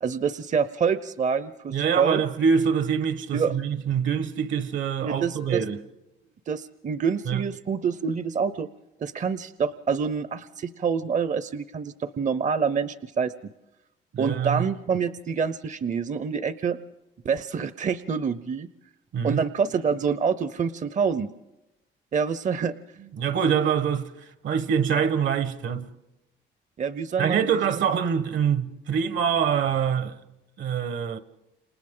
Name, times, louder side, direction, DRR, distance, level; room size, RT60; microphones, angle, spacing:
voice 1, 0.0-2.2 3.3-3.6 5.0-5.6 6.5-8.7 9.0-13.3 14.2-16.8 17.2-18.7 19.2-21.3 22.1-22.7 26.8-27.5 27.8-27.9, right 6 dB, 40° right, 0.6 m, -26 dB
voice 2, 1.7-5.8 7.3-7.4 14.1-14.7 19.1-19.4 23.2-25.9 27.2-30.2 30.6-31.2, right 7 dB, 70° right, 1.3 m, -25 dB
30.0 x 28.0 x 3.8 m
cardioid pair, 90°, 20 cm